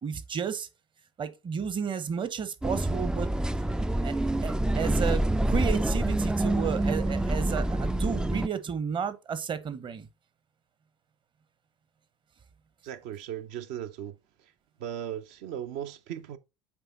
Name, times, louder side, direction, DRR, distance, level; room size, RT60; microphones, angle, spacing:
voice 1, 0.0-0.7 1.2-3.3 4.0-4.1 4.4-10.1, right 7 dB, 30° right, 0.9 m, -32 dB
sound 1, 2.6-8.5, right 1 dB, 5° right, 0.3 m, -27 dB
voice 2, 12.8-14.2 14.8-16.4, right 10 dB, 60° right, 0.7 m, -37 dB
8.1 x 3.4 x 4.0 m
figure-of-eight pair, 65°, 16 cm